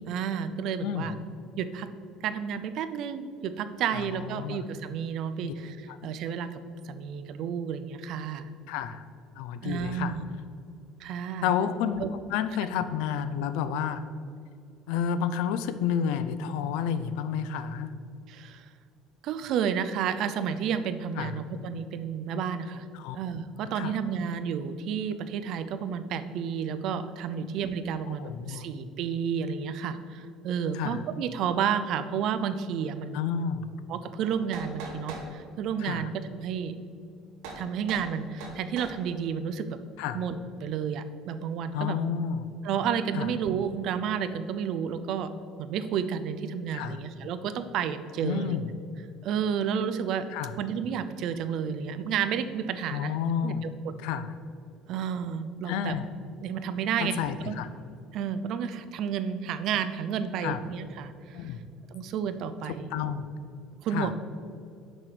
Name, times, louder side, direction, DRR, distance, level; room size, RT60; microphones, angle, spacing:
voice 1, 0.1-1.1 1.6-1.9 2.2-6.6 6.8-8.5 9.6-10.2 11.0-11.5 12.0-12.1 18.3-18.7 19.2-22.8 23.1-33.2 33.9-36.8 37.6-39.8 40.1-42.0 42.6-45.3 45.6-48.6 49.2-50.3 50.6-53.1 53.4-54.1 54.9-55.9 56.4-57.6 58.1-61.5 61.9-62.9 63.8-64.1, right 7 dB, 45° right, 10 dB, 0.4 m, -31 dB
voice 2, 4.0-4.6 5.4-5.5 5.9-6.0 8.7-9.0 9.4-10.1 11.4-12.0 12.3-14.0 14.9-17.9 21.2-21.3 22.9-23.2 23.7-23.9 28.1-28.7 30.7-31.0 33.1-33.7 35.8-36.1 40.0-40.2 41.7-42.5 43.1-43.3 46.7-47.0 48.2-48.7 50.3-50.5 52.9-53.6 54.0-54.3 55.7-56.1 57.0-57.7 60.4-60.6 61.3-61.6 62.7-63.3 63.9-64.1, left 8 dB, 75° left, 12 dB, 0.5 m, -30 dB
sound 1, 34.2-35.3 37.4-37.6 37.9-38.1 38.4-39.0, right 3 dB, 85° right, 1.5 m, -40 dB
6.1 x 5.0 x 5.9 m, 2.4 s
cardioid pair, 175°, 0 cm